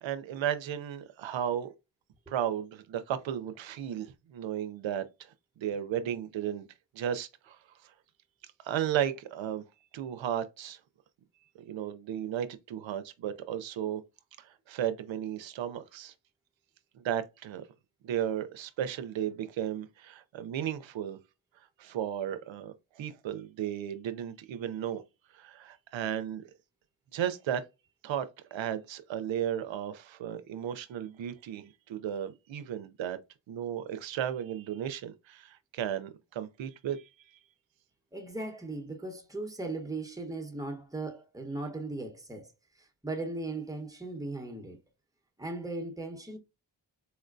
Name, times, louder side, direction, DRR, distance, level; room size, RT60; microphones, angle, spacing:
voice 1, 0.0-1.7 2.3-6.7 6.9-7.9 8.4-9.6 9.9-10.8 11.7-14.0 14.4-16.1 17.0-17.7 18.0-21.2 21.8-25.0 25.3-26.4 27.1-27.6 28.0-33.2 33.5-37.4, right 10 dB, 85° right, 0.5 m, -34 dB
voice 2, 38.1-42.5 42.8-44.8 45.4-46.4, right 2 dB, 10° right, 0.9 m, -38 dB
4.3 x 2.1 x 2.5 m
cardioid pair, 50°, 45 cm